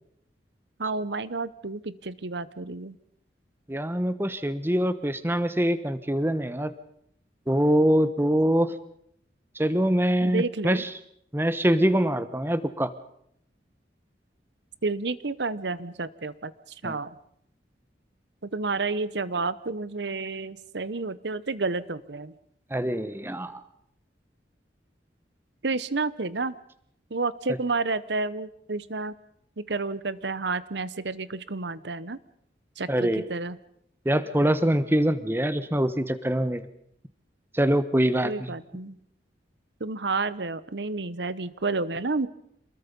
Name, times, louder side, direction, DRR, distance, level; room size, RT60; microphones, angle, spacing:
voice 1, 0.8-3.0 10.2-10.8 14.8-16.5 16.8-17.1 18.4-22.3 25.6-26.5 27.1-29.1 29.6-32.2 32.8-33.6 38.2-39.0 39.8-42.3, right 3 dB, 70° right, 16 dB, 1.0 m, -30 dB
voice 2, 3.7-6.7 7.5-8.8 9.5-10.9 11.3-12.9 16.8-17.0 22.7-23.6 32.9-33.3 34.0-36.7 37.5-38.5, equal, 10° right, 13 dB, 1.1 m, -24 dB
27.5 x 21.0 x 5.3 m, 0.71 s
head